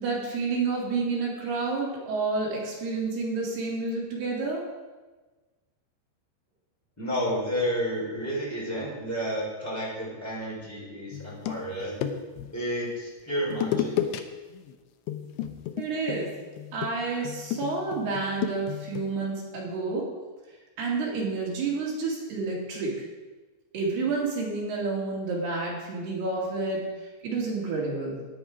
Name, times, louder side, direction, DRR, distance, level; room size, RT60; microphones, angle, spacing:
voice 1, 0.0-4.6 15.8-16.3 16.7-20.1 20.8-23.0 23.7-28.3, right 3 dB, 65° right, -4 dB, 4.6 m, -29 dB
voice 2, 7.0-12.0 12.5-13.9, equal, 5° left, -5 dB, 3.9 m, -31 dB
sound 1, 11.1-12.5 13.5-14.2 14.5-14.7 15.1-19.1, left 10 dB, 80° left, 2.8 m, -32 dB
13.5 x 9.8 x 4.9 m, 1.3 s
omnidirectional pair, 5.1 m